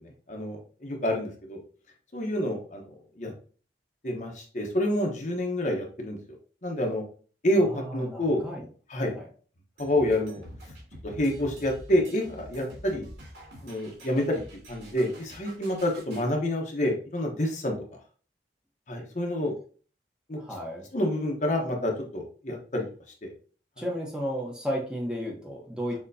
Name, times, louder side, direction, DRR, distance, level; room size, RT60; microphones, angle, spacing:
voice 1, 0.0-1.6 2.1-2.9 3.2-3.3 4.0-6.2 6.6-7.0 7.4-8.4 8.9-9.1 9.8-10.4 11.0-13.1 13.6-14.4 14.7-17.7 18.9-19.5 20.3-20.4 20.9-22.9 23.2-23.3, left 1 dB, 45° left, 1 dB, 0.9 m, -28 dB
voice 2, 7.6-8.7 9.1-9.3 20.4-20.9 23.8-26.0, equal, 5° right, -2 dB, 0.9 m, -33 dB
sound 1, 9.8-16.3, equal, 80° right, 2.4 m, -46 dB
6.6 x 2.9 x 2.6 m, 0.41 s
head